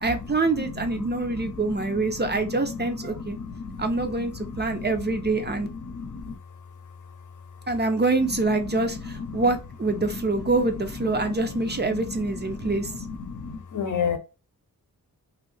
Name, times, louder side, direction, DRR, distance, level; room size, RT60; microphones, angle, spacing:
voice 1, 0.0-3.4 3.8-5.7 7.7-12.9, right 3 dB, 30° right, 0.5 m, -25 dB
voice 2, 0.6-2.2 3.2-4.0 4.4-4.8 5.1-5.2 5.8-6.3 8.7-8.9 9.3-9.4 11.2-11.4 11.9-14.2, left 6 dB, 55° left, 0.7 m, -33 dB
3.0 x 2.6 x 3.2 m
wide cardioid pair, 90°, 36 cm